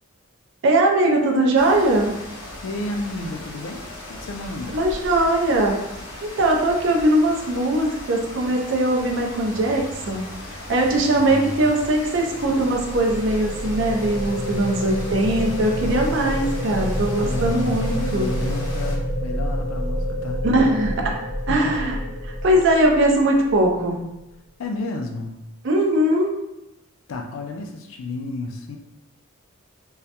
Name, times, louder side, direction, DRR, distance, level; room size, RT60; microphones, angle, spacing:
voice 1, 0.6-2.1 4.7-18.3 20.4-21.1 21.5-22.0 22.2-24.0 25.6-26.3, right 1 dB, 60° right, 0 dB, 0.4 m, -20 dB
sound 1, 1.5-19.0, left 1 dB, 90° left, 0.7 m, -38 dB
voice 2, 2.6-4.8 11.1-11.7 17.2-20.4 21.5-21.7 24.6-25.3 27.1-28.8, left 2 dB, 70° left, 3 dB, 0.3 m, -32 dB
sound 2, 8.5-15.8, right 3 dB, 20° right, 0.8 m, -47 dB
sound 3, 11.9-24.1, equal, 15° left, 0.5 m, -28 dB
2.2 x 2.0 x 2.8 m, 0.92 s
head